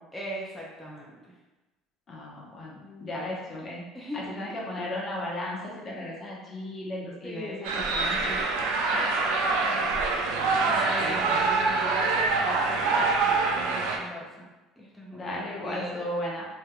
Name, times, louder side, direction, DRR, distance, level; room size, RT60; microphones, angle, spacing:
voice 1, 0.1-1.3 2.7-3.2 3.9-4.8 5.9-6.1 7.2-8.3 8.9-14.5 14.8-16.1, right 1 dB, ahead, -5 dB, 0.7 m, -39 dB
voice 2, 2.1-3.8 4.1-8.4 10.2-10.7 11.0-11.4 15.1-16.4, left 1 dB, 40° left, -4 dB, 1.0 m, -36 dB
sound 1, 7.6-14.0, right 3 dB, 80° right, 0.4 m, -25 dB
3.3 x 2.8 x 2.4 m, 1.1 s
supercardioid pair, 80°, 0 cm